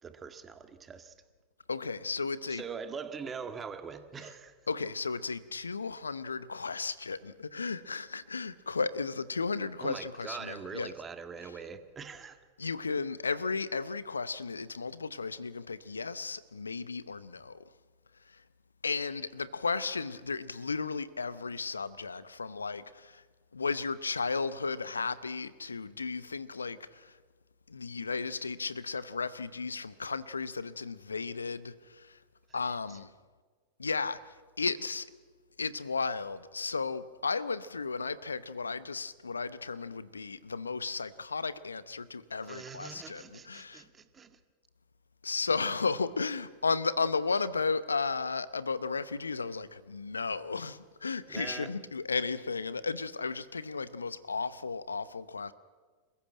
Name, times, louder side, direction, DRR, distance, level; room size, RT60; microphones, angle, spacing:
voice 1, 0.0-1.1 2.5-4.6 9.8-12.4 32.5-32.6 32.9-33.0 42.4-44.4 51.3-51.7, right 6 dB, 20° right, 1.8 m, -43 dB
voice 2, 1.7-2.6 4.7-10.9 12.6-17.7 18.3-18.4 18.8-23.2 23.5-27.2 27.7-32.2 32.5-33.1 33.8-35.1 35.6-43.8 45.2-55.5, left 4 dB, 85° left, 0.8 m, -34 dB
27.5 x 15.0 x 8.9 m
figure-of-eight pair, 95°, 0 cm